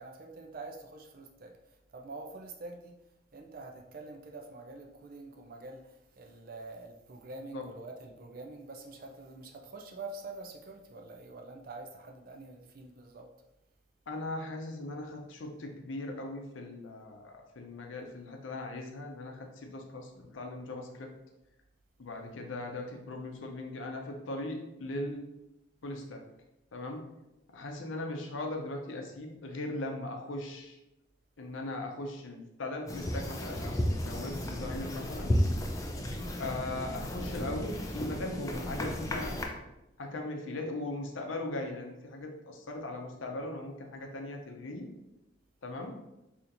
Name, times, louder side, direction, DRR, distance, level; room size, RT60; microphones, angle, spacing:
voice 1, 0.0-1.5 1.9-3.0 3.3-13.3, right 3 dB, 45° right, 3 dB, 0.4 m, -46 dB
voice 2, 14.1-21.1 22.0-25.2 25.8-26.2 26.7-27.0 27.5-30.8 31.4-35.3 36.4-39.4 40.0-44.9 45.6-46.0, left 2 dB, 85° left, 2 dB, 0.6 m, -39 dB
sound 1, 32.9-39.5, equal, 15° left, 0.3 m, -33 dB
4.2 x 2.8 x 2.6 m, 0.92 s
head